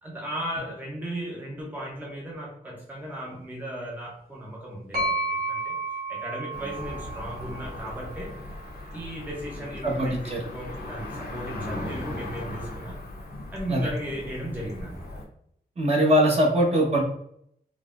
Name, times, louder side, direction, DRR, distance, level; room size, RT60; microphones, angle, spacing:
voice 1, 0.0-5.8 6.1-8.4 8.9-13.0 13.5-15.2, right 1 dB, 10° right, -3 dB, 0.6 m, -36 dB
sound 1, 4.9-8.7, right 2 dB, 70° right, 1.3 m, -32 dB
Cricket / Motor vehicle (road), 6.5-15.2, left 1 dB, 80° left, 0.7 m, -38 dB
voice 2, 9.8-10.4 13.7-13.8 15.8-17.0, equal, 40° right, -2 dB, 0.8 m, -21 dB
3.8 x 2.0 x 2.3 m, 0.70 s
wide cardioid pair, 120°, 16 cm